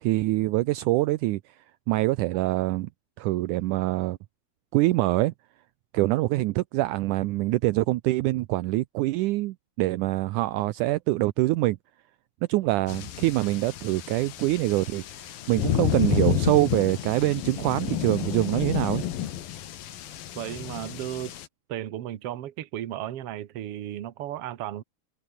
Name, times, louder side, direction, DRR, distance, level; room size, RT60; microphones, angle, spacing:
voice 1, 0.0-1.6 1.9-2.9 3.2-4.2 4.7-5.3 5.9-11.8 12.5-19.1, right 18 dB, 80° right, 1.9 m, -25 dB
sound 1, 12.9-21.5, left 11 dB, 80° left, 3.6 m, -30 dB
voice 2, 20.4-21.4 21.7-24.8, right 12 dB, 55° right, 1.8 m, -34 dB
omnidirectional pair, 4.1 m